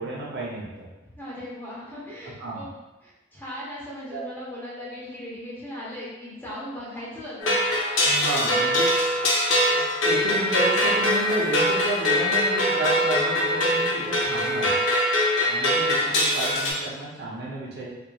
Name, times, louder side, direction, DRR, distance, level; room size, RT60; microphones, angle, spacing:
voice 1, 0.0-0.9 2.2-2.6 4.1-4.2 8.0-8.9 9.7-14.8 15.5-17.9, right 2 dB, 60° right, -5 dB, 0.7 m, -32 dB
voice 2, 1.0-2.7 3.0-7.5, left 1 dB, 10° left, -8 dB, 0.9 m, -38 dB
sound 1, 7.4-16.7, left 1 dB, 70° left, 0.6 m, -22 dB
3.0 x 2.6 x 2.3 m, 1.1 s
head